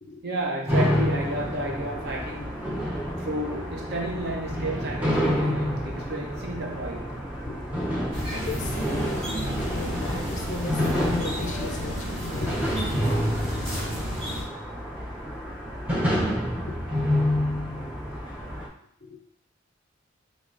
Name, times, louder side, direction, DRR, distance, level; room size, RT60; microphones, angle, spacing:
voice 1, 0.2-2.7 3.2-7.1, right 1 dB, 55° right, 0.7 m, -32 dB
sound 1, 0.7-18.7, equal, 5° right, 0.6 m, -28 dB
voice 2, 7.5-7.8 8.3-9.2 9.5-12.7 19.0-19.2, left 3 dB, 35° left, 0.4 m, -35 dB
sound 2, 8.1-14.4, equal, 30° right, 1.3 m, -32 dB
3.5 x 3.1 x 2.5 m
head